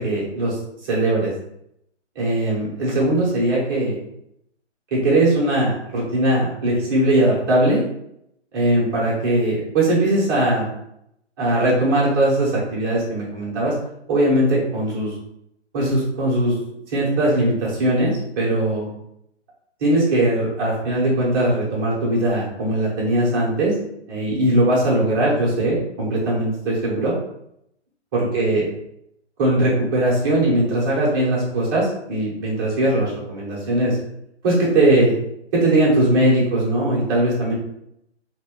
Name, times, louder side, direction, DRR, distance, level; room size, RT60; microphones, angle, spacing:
voice 1, 0.0-1.3 2.1-4.0 4.9-7.8 8.5-10.7 11.4-13.7 14.1-15.1 15.7-16.5 16.9-18.9 19.8-23.7 24.1-27.1 28.1-28.7 29.4-34.0 34.4-35.1 35.5-37.5, right 1 dB, 20° right, -6 dB, 0.9 m, -20 dB
2.9 x 2.9 x 3.6 m, 0.79 s
figure-of-eight pair, 140°, 35 cm